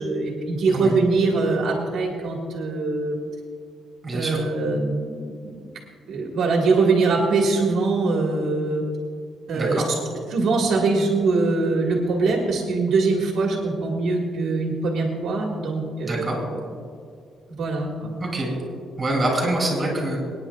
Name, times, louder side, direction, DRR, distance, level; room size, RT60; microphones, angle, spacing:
voice 1, 0.0-3.2 4.1-5.6 6.1-8.8 9.5-9.8 10.3-16.3 17.6-18.1, right 3 dB, 60° right, -1 dB, 1.7 m, -22 dB
voice 2, 4.0-4.4 9.5-9.9 16.0-16.4 18.2-18.5 19.0-20.2, right 1 dB, 20° right, -1 dB, 3.5 m, -25 dB
24.5 x 9.7 x 2.4 m, 2.2 s
cardioid pair, 170°, 0 cm